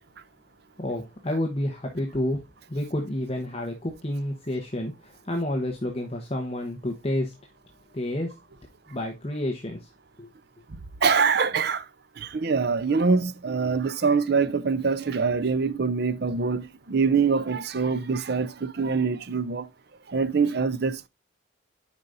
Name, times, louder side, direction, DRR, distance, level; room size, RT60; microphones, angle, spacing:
voice 1, 0.8-2.4 2.7-7.3 7.9-8.3 8.9-9.8 10.2-10.3, left 1 dB, 30° left, 1.0 m, -29 dB
voice 2, 11.0-11.8 12.2-19.7 20.1-21.1, right 5 dB, 50° right, 0.5 m, -24 dB
9.6 x 5.1 x 2.6 m
head